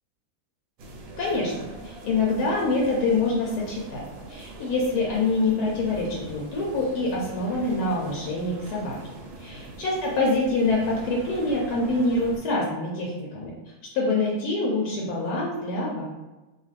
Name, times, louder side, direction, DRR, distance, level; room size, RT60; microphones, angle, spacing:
sound 1, 0.8-12.4, right 1 dB, 70° right, 0.9 m, -42 dB
voice 1, 1.2-1.5 1.8-9.0 9.4-13.5 13.9-16.0, left 2 dB, 80° left, -3 dB, 1.1 m, -25 dB
2.6 x 2.3 x 3.2 m, 1.1 s
omnidirectional pair, 1.6 m